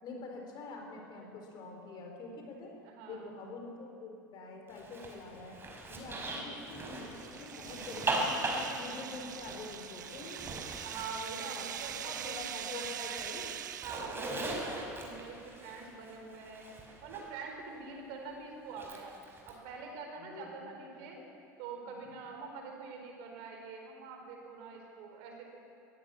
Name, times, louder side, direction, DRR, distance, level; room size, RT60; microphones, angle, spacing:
voice 1, 0.0-2.7 3.0-5.6 5.9-10.4 11.4-13.5 20.2-20.7 21.2-21.3 21.8-22.0, left 3 dB, 45° left, 2 dB, 4.8 m, -46 dB
voice 2, 2.8-3.3 6.4-6.6 10.8-13.3 13.8-16.7 17.0-19.1 19.5-21.2 21.6-25.4, right 4 dB, 60° right, 2 dB, 4.5 m, -45 dB
Zipper (clothing), 4.7-12.6 12.8-17.3 18.7-19.5, right 2 dB, 25° right, 4.9 m, -40 dB
sound 1, 6.7-14.3, right 10 dB, 75° right, 0.6 m, -43 dB
22.5 x 15.5 x 7.3 m, 2.7 s
figure-of-eight pair, 70°, 10 cm